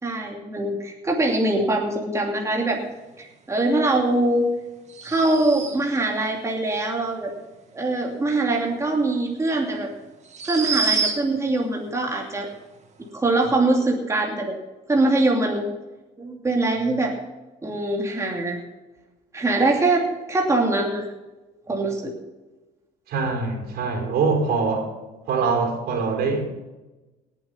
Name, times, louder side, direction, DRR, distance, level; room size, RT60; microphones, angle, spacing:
voice 1, 0.0-2.8 3.2-4.5 5.0-7.3 7.7-9.9 10.4-12.5 13.1-14.5 14.9-15.7 16.2-17.1 17.6-18.6 19.3-21.0 21.7-22.1, right 2 dB, 15° right, 0 dB, 2.7 m, -23 dB
sound 1, 4.9-6.0 9.1-9.2 10.2-11.5, right 5 dB, 40° right, 2.2 m, -27 dB
voice 2, 23.1-24.9 25.3-26.5, right 4 dB, 70° right, 3 dB, 4.5 m, -23 dB
18.5 x 8.2 x 5.5 m, 1.1 s
cardioid pair, 110°, 17 cm